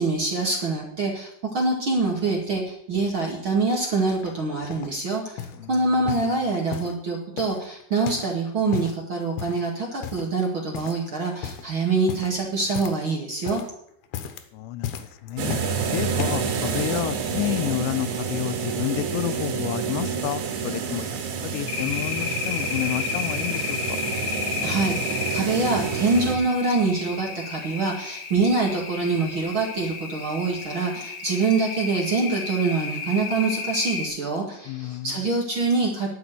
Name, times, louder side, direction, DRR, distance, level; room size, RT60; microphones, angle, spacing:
voice 1, 0.0-13.6 24.6-36.1, right 3 dB, 40° right, -1 dB, 2.1 m, -25 dB
sound 1, 4.2-5.0 5.4-5.6 6.1-7.0 7.4-8.4 8.6-9.0 9.4-9.7 10.0-10.4 10.7-11.1 11.3-11.7 12.1-13.1 13.4-13.7 14.0-14.5 14.8-15.8 16.2-16.5 17.2-17.3, left 9 dB, 70° left, 2.7 m, -35 dB
voice 2, 14.5-15.6 15.9-21.2 21.4-24.0 34.7-35.3, left 15 dB, 90° left, 13 dB, 2.9 m, -30 dB
sound 2, 15.4-26.4, right 6 dB, 75° right, 4.0 m, -28 dB
sound 3, 21.7-34.1, left 6 dB, 55° left, 2.3 m, -33 dB
11.5 x 7.1 x 8.3 m, 0.71 s
omnidirectional pair, 4.9 m